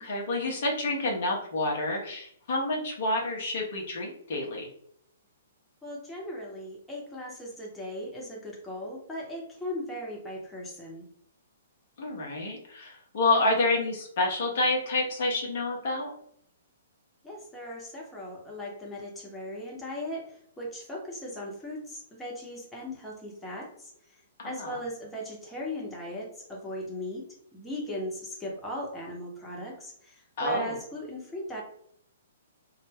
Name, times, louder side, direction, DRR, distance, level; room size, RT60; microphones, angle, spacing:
voice 1, 0.0-4.7 12.0-16.1 24.4-24.7 30.4-30.7, left 2 dB, 55° left, -1 dB, 0.8 m, -28 dB
voice 2, 5.8-11.1 17.2-27.2 27.5-31.6, left 1 dB, 10° left, -3 dB, 0.8 m, -38 dB
2.3 x 2.1 x 3.3 m, 0.67 s
figure-of-eight pair, 120°, 0 cm